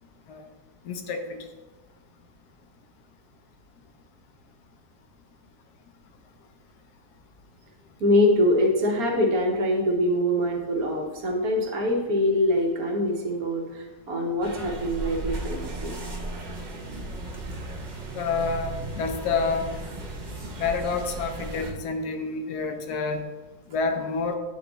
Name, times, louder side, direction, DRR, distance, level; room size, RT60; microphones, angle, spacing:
voice 1, 0.8-1.4 18.1-19.7 20.6-23.3 23.7-24.4, left 4 dB, 80° left, 6 dB, 1.3 m, -28 dB
voice 2, 8.0-15.9, left 1 dB, 65° right, 0 dB, 1.4 m, -24 dB
sound 1, 14.4-21.7, right 2 dB, 40° right, 0.7 m, -35 dB
8.9 x 3.5 x 3.9 m, 1.2 s
omnidirectional pair, 1.7 m